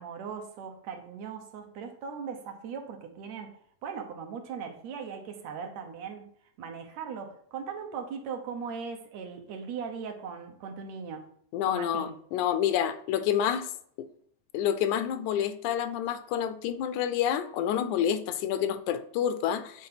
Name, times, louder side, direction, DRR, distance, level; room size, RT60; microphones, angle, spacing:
voice 1, 0.0-6.2 6.6-11.3 11.6-12.2, right 6 dB, 70° right, 2.2 m, -39 dB
voice 2, 11.5-13.7 14.0-14.1 14.5-19.9, left 9 dB, 85° left, 2.1 m, -28 dB
8.9 x 3.9 x 5.7 m
omnidirectional pair, 3.4 m